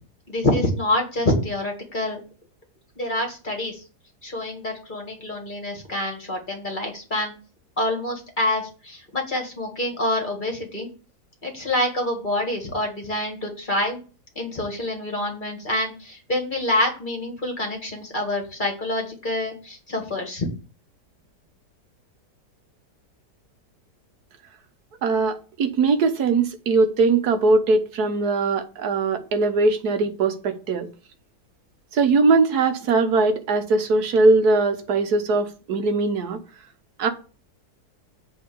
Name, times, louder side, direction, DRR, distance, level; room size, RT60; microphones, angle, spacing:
voice 1, 0.3-2.2 3.0-3.8 4.2-7.3 7.8-10.9 11.4-14.0 14.4-20.5, left 1 dB, 30° left, 1.9 m, -26 dB
voice 2, 25.0-30.9 31.9-36.4 37.0-37.1, right 3 dB, 70° right, 1.6 m, -20 dB
8.4 x 3.8 x 6.8 m
omnidirectional pair, 1.8 m